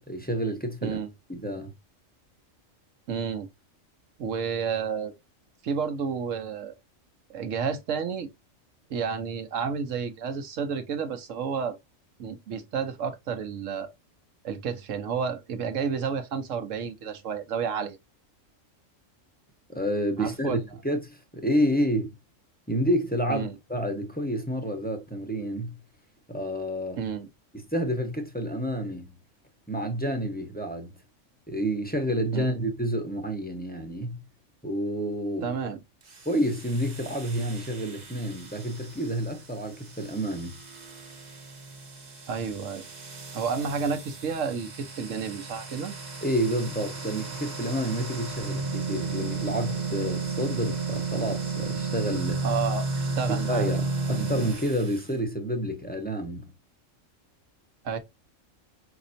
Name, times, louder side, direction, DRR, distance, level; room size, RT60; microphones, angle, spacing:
voice 1, 0.1-1.0 1.3-1.7 19.7-20.6 20.8-22.1 22.7-25.8 26.3-27.0 27.5-29.1 29.7-30.9 31.5-34.2 34.6-35.5 36.2-40.6 46.2-52.4 53.4-53.8 54.1-56.5, equal, 10° left, 0.7 m, -29 dB
voice 2, 3.1-3.5 4.2-5.1 5.6-6.7 7.3-8.3 8.9-11.8 12.2-13.9 14.4-18.0 20.2-20.6 23.3-23.6 27.0-27.3 32.3-32.5 35.4-35.8 42.3-42.8 43.3-45.9 52.4-53.7 54.1-54.3 57.8-58.0, right 6 dB, 70° right, 1.2 m, -31 dB
sound 1, 36.0-55.1, right 4 dB, 40° right, 0.9 m, -34 dB
5.3 x 3.0 x 2.6 m
omnidirectional pair, 1.4 m